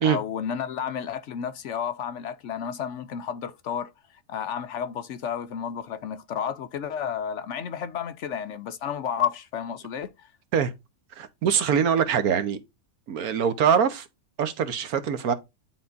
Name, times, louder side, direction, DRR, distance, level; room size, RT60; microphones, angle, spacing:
voice 1, 0.0-3.9 4.3-10.3, left 8 dB, 65° left, 0.8 m, -31 dB
voice 2, 11.2-12.6 13.1-14.1 14.4-15.3, right 7 dB, 85° right, 1.4 m, -23 dB
10.0 x 3.9 x 2.5 m
omnidirectional pair, 1.5 m